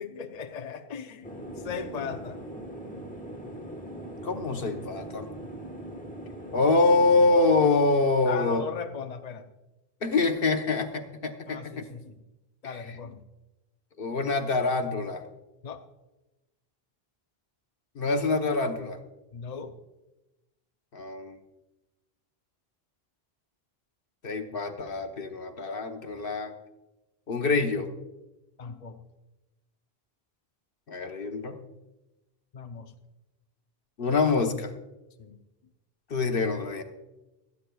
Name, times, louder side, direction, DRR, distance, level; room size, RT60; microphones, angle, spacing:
voice 1, 0.0-2.4 8.3-9.5 11.5-12.2 12.6-13.2 15.6-15.8 19.3-19.7 28.6-29.0 30.9-31.0 32.5-32.9 35.2-35.4, left 6 dB, 45° left, 6 dB, 0.6 m, -38 dB
sound 1, 1.2-7.7, right 1 dB, 10° left, 1.3 m, -41 dB
voice 2, 4.2-5.3 6.5-8.6 10.0-11.8 14.0-15.2 17.9-19.0 20.9-21.4 24.2-26.5 27.3-27.9 30.9-31.6 34.0-34.7 36.1-36.8, left 3 dB, 65° left, 6 dB, 1.2 m, -25 dB
25.5 x 9.6 x 2.3 m, 1.0 s
omnidirectional pair, 1.0 m